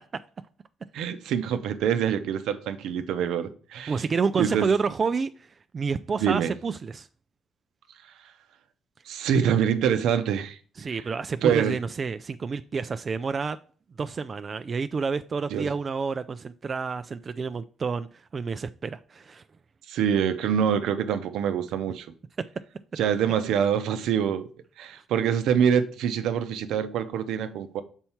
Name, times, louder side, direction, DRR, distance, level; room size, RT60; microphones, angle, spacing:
voice 1, 0.9-4.0 4.4-4.7 6.2-6.5 9.1-10.6 10.9-11.0 11.4-11.8 15.5-15.7 19.9-22.1 23.0-24.5 24.8-27.8, right 8 dB, 85° right, 0.6 m, -25 dB
voice 2, 3.9-7.1 10.8-13.6 14.0-19.4, right 5 dB, 40° right, 0.3 m, -29 dB
5.6 x 4.4 x 4.4 m
cardioid pair, 90°, 0 cm